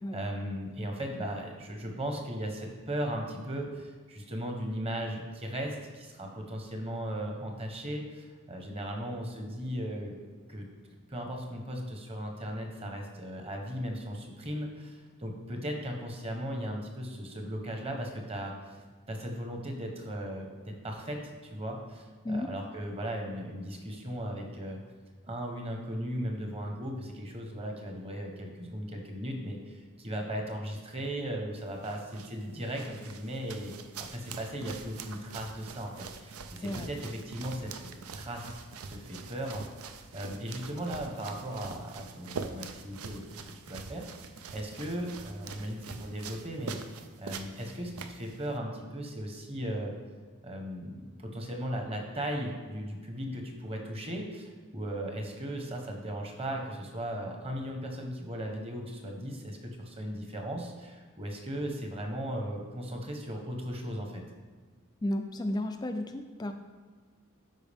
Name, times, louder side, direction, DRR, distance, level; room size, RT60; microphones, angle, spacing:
voice 1, 0.1-10.2 10.5-10.7 11.1-24.8 25.2-33.7 34.0-37.9 38.1-38.6 38.9-46.8 47.2-49.9 50.4-64.2, equal, 25° right, 2 dB, 1.0 m, -37 dB
sound 1, 31.6-48.6, right 5 dB, 85° right, 0.5 m, -44 dB
voice 2, 65.0-66.5, left 1 dB, 20° left, 6 dB, 0.3 m, -33 dB
12.0 x 4.7 x 3.5 m, 1.5 s
head